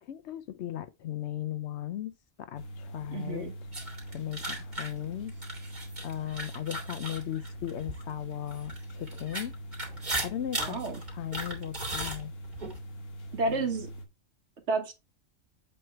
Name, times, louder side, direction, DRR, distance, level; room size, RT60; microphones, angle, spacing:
voice 1, 0.0-2.1 2.4-3.5 4.1-5.3 6.0-9.6 10.0-10.8 11.1-12.3, left 12 dB, 70° left, 0.8 m, -37 dB
sound 1, 2.6-14.1, equal, 85° left, 1.4 m, -43 dB
voice 2, 3.1-3.5 10.6-11.0 13.3-13.9 14.7-14.9, right 3 dB, 65° right, 1.5 m, -31 dB
sound 2, 3.7-8.0 8.5-12.8, right 1 dB, 35° right, 2.6 m, -37 dB
7.7 x 3.3 x 4.4 m
omnidirectional pair, 1.3 m